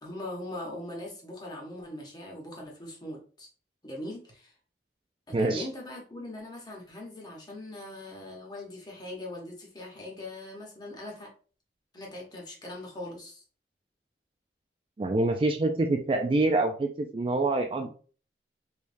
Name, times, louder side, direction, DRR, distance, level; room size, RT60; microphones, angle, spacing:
voice 1, 0.0-3.5 3.8-4.5 5.3-11.3 11.9-13.4 17.8-17.9, left 1 dB, 25° left, -1 dB, 1.0 m, -41 dB
voice 2, 5.3-5.6 15.0-17.9, right 2 dB, 30° right, 4 dB, 0.3 m, -26 dB
3.4 x 3.1 x 2.6 m, 0.40 s
head